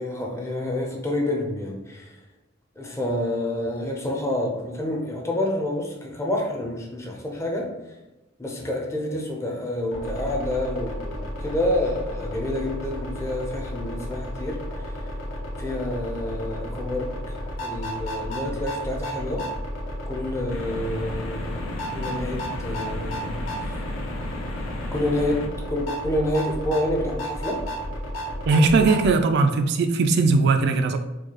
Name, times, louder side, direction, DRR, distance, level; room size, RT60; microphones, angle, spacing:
voice 1, 0.0-2.2 2.8-7.7 8.4-15.1 15.6-19.5 20.1-23.8 24.9-27.6 29.1-29.2, left 1 dB, 15° left, 0 dB, 0.5 m, -28 dB
sound 1, 9.9-29.1, equal, 70° left, 0.8 m, -33 dB
sound 2, 20.5-25.5, left 2 dB, 90° left, 0.5 m, -36 dB
voice 2, 28.5-31.0, right 3 dB, 55° right, 6 dB, 0.3 m, -19 dB
4.6 x 2.3 x 2.9 m, 1.0 s
head